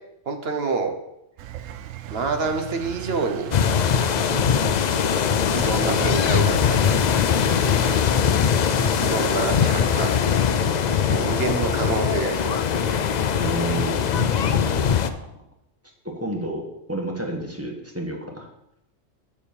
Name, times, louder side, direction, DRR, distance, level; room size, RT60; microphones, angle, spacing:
voice 1, 0.3-0.9 2.1-3.5 5.5-6.9 9.0-10.4 11.1-13.0, right 4 dB, 55° right, 5 dB, 1.2 m, -27 dB
Engine, 1.4-12.2, right 13 dB, 80° right, 1.0 m, -36 dB
sound 1, 3.5-15.1, left 7 dB, 80° left, 0.4 m, -21 dB
voice 2, 13.4-15.3 16.0-18.5, right 1 dB, 10° right, 0 dB, 1.3 m, -31 dB
6.9 x 5.0 x 7.0 m, 0.83 s
omnidirectional pair, 1.3 m